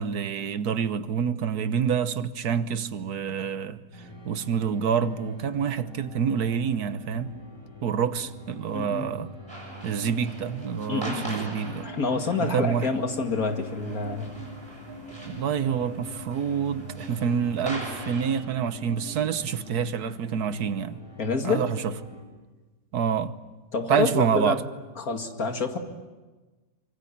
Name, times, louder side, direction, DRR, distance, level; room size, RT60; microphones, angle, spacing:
voice 1, 0.0-3.8 4.2-7.3 7.8-9.3 9.8-11.9 12.4-12.9 15.3-21.0 21.4-21.9 22.9-23.4 23.9-24.6, right 7 dB, 75° right, 1.5 m, -27 dB
sound 1, 3.9-22.2, left 2 dB, 15° left, 6.9 m, -45 dB
voice 2, 8.7-9.1 10.9-11.3 11.8-14.3 21.2-21.7 23.7-24.6 25.0-25.8, left 4 dB, 60° left, 2.7 m, -27 dB
sound 2, 9.5-18.4, right 1 dB, 15° right, 7.0 m, -42 dB
sound 3, 9.8-19.2, equal, 40° right, 3.3 m, -45 dB
25.5 x 24.0 x 8.7 m
omnidirectional pair, 1.7 m